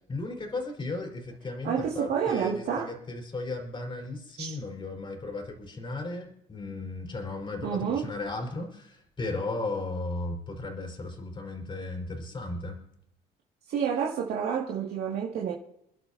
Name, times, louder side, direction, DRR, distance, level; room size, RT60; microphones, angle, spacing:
voice 1, 0.1-12.8, left 2 dB, 30° left, 4.5 m, -35 dB
voice 2, 1.6-2.9 4.4-4.6 7.6-8.1 13.7-15.5, right 7 dB, 70° right, 2.3 m, -29 dB
29.5 x 11.5 x 2.8 m
cardioid pair, 110°, 17 cm